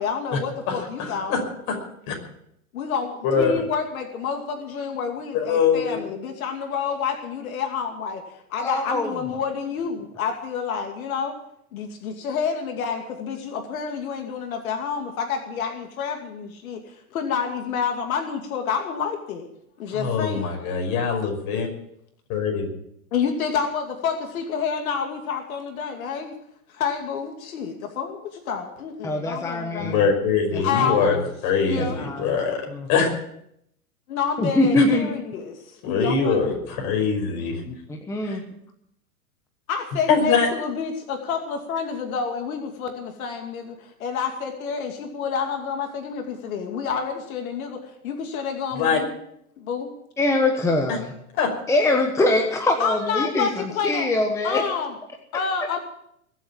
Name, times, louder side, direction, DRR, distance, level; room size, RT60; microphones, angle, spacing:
voice 1, 0.0-1.4 2.7-8.2 8.5-11.4 11.7-19.5 19.8-20.5 23.1-26.3 26.7-30.0 30.6-31.2 31.7-32.0 34.1-36.7 39.7-49.1 49.6-49.9 52.8-54.1 54.4-54.9 55.3-55.8, left 6 dB, 70° left, 4 dB, 2.6 m, -29 dB
voice 2, 0.7-1.4 2.1-2.2 3.2-3.5 5.3-6.0 19.9-21.7 22.3-22.7 29.8-31.2 31.4-32.6 32.9-33.1 34.7-34.8 35.8-37.6 38.2-38.4 40.1-40.5 48.7-49.0 51.4-51.5, left 5 dB, 40° left, 3 dB, 5.7 m, -23 dB
voice 3, 8.6-9.1 29.0-30.0 30.5-30.9 31.8-32.4 32.7-32.9 34.4-35.1 37.7-38.4 50.2-51.0 51.7-54.6, left 2 dB, 5° left, 3 dB, 1.2 m, -23 dB
21.5 x 8.1 x 7.4 m, 0.74 s
hypercardioid pair, 140°, 44 cm